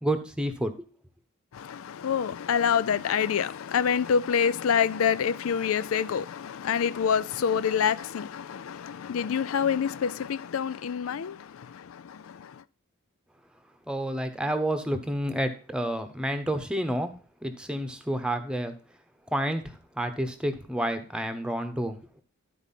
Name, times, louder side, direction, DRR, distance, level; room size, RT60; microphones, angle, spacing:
voice 1, 0.0-0.7 13.9-17.1 17.4-18.7 19.3-22.0, right 1 dB, 5° right, 1.0 m, -29 dB
voice 2, 1.5-12.6, left 7 dB, 80° left, 0.4 m, -27 dB
12.0 x 4.6 x 5.7 m
head